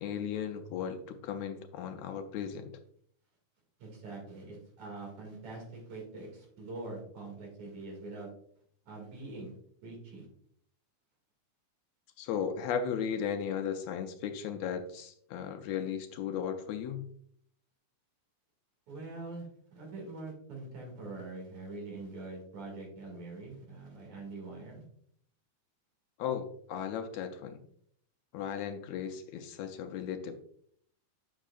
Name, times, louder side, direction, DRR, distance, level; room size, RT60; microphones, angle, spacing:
voice 1, 0.0-2.8 12.2-17.1 26.2-27.6 28.3-30.4, left 8 dB, 80° left, 7 dB, 1.7 m, -36 dB
voice 2, 3.8-8.3 8.9-9.5 9.8-10.3 18.9-24.9, right 3 dB, 75° right, 0 dB, 3.6 m, -44 dB
7.3 x 6.3 x 2.5 m, 0.64 s
omnidirectional pair, 3.3 m